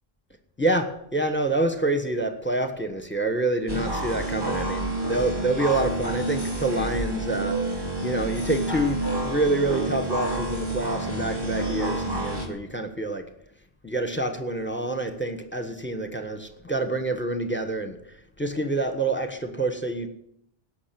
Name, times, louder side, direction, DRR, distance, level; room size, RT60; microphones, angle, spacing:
voice 1, 0.6-7.6 8.0-13.2 13.8-18.0 18.4-20.1, right 2 dB, 10° left, 7 dB, 1.3 m, -27 dB
sound 1, 3.7-12.5, right 2 dB, 25° right, 2.5 m, -29 dB
17.5 x 6.5 x 7.7 m, 0.73 s
omnidirectional pair, 1.0 m